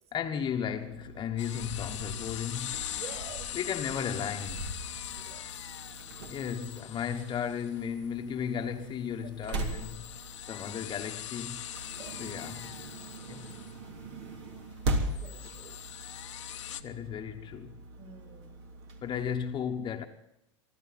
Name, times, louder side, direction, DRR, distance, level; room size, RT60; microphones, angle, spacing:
voice 1, 0.1-2.8 3.5-4.8 6.3-10.1 10.5-11.7 12.2-12.7 13.3-13.5 16.8-17.8 19.0-20.0, left 8 dB, 30° left, 1.2 m, -35 dB
sound 1, 0.7-19.4, right 2 dB, 65° right, 3.2 m, -40 dB
sound 2, 1.4-16.8, left 12 dB, 75° left, 1.0 m, -42 dB
voice 2, 2.9-3.6 5.1-5.7 9.2-9.3 11.8-12.3 15.2-15.7 18.0-18.6, right 6 dB, 40° right, 6.0 m, -49 dB
23.0 x 13.0 x 4.2 m
hypercardioid pair, 100°, 16 cm